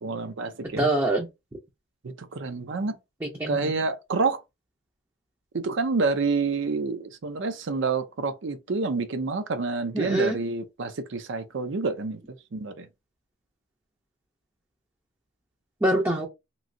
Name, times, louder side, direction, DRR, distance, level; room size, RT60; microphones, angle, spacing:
voice 1, 0.0-0.8 2.0-3.0 3.5-4.4 5.5-12.2 12.5-12.9, right 4 dB, 65° right, 0.5 m, -28 dB
voice 2, 0.8-1.3 3.2-3.7 9.9-10.4 15.8-16.3, right 1 dB, 15° right, 0.5 m, -24 dB
3.0 x 2.6 x 2.6 m
head